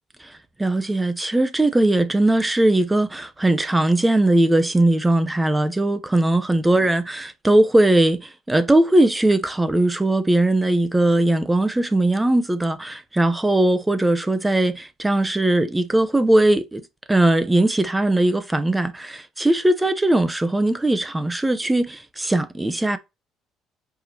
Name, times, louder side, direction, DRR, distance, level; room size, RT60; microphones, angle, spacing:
voice 1, 0.2-16.8 17.1-23.0, right 1 dB, 10° right, 0.8 m, -19 dB
7.9 x 5.0 x 2.9 m
cardioid pair, 115°, 0 cm